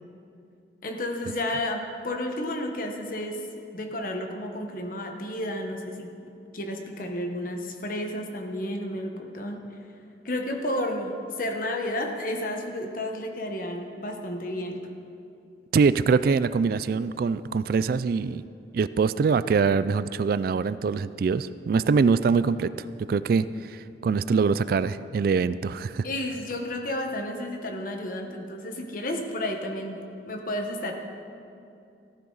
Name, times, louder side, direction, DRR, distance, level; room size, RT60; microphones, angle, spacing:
voice 1, 0.8-3.4 3.7-6.1 6.5-9.6 10.2-14.9 26.0-30.9, left 1 dB, 50° left, 3 dB, 1.2 m, -32 dB
voice 2, 15.7-18.4 18.7-26.1, right 5 dB, 55° right, 15 dB, 0.3 m, -24 dB
14.5 x 13.5 x 4.0 m, 2.6 s
head